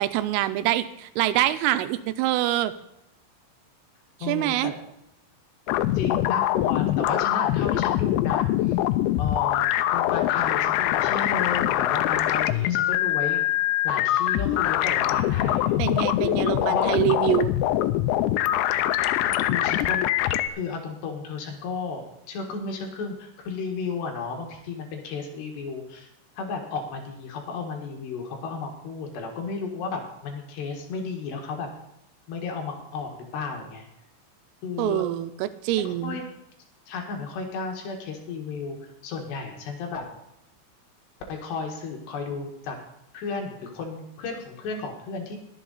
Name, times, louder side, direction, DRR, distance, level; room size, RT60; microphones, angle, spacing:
voice 1, 0.0-2.7 4.3-4.7 15.8-17.5 34.8-36.2, right 14 dB, 90° right, 12 dB, 3.3 m, -25 dB
voice 2, 4.2-4.7 5.9-8.8 9.2-13.4 13.8-16.0 16.6-17.0 19.4-26.1 26.4-31.7 32.3-33.9 34.6-35.1 35.8-36.2 36.9-38.8 39.0-40.1 41.3-42.8 43.1-45.4, left 4 dB, 65° left, 2 dB, 3.4 m, -33 dB
sound 1, 5.7-20.5, left 13 dB, 90° left, 2.5 m, -23 dB
22.0 x 7.4 x 4.0 m, 0.83 s
omnidirectional pair, 5.8 m